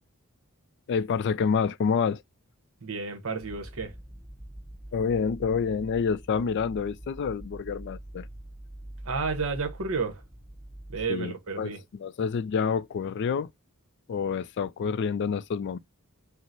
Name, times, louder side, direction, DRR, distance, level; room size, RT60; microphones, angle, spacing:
voice 1, 0.9-2.2 4.9-8.3 11.1-13.5 14.1-15.8, left 6 dB, 55° left, 0.3 m, -28 dB
voice 2, 2.8-3.9 9.0-10.2 10.9-11.8, right 4 dB, 65° right, 0.9 m, -31 dB
sound 1, 3.4-11.1, right 1 dB, 15° right, 1.1 m, -44 dB
4.5 x 2.0 x 3.9 m
head